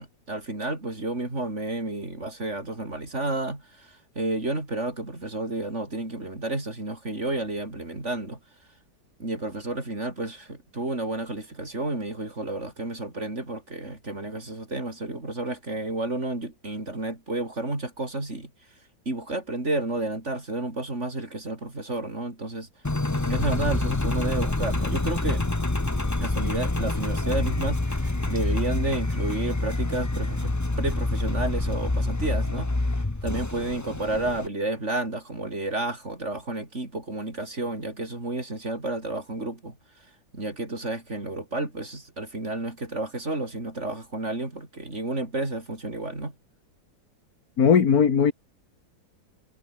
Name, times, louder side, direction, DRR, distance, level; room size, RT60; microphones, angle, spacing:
voice 1, 0.0-8.4 9.2-18.5 19.1-22.7 23.2-25.5 26.2-32.7 33.2-39.8 40.3-46.4, right 2 dB, 40° right, 5.7 m, -31 dB
Engine, 22.8-34.5, left 2 dB, 10° left, 0.9 m, -27 dB
voice 2, 47.6-48.3, left 7 dB, 55° left, 2.1 m, -18 dB
omnidirectional pair, 1.9 m